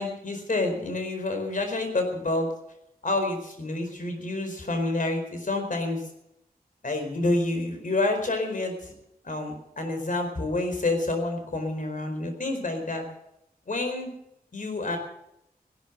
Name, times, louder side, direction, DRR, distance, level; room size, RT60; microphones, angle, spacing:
voice 1, 0.0-2.5 3.0-6.0 6.8-8.9 9.2-13.1 13.7-14.1 14.5-15.0, left 2 dB, 55° left, 5 dB, 4.5 m, -28 dB
16.5 x 12.5 x 6.8 m, 0.81 s
wide cardioid pair, 75°, 16 cm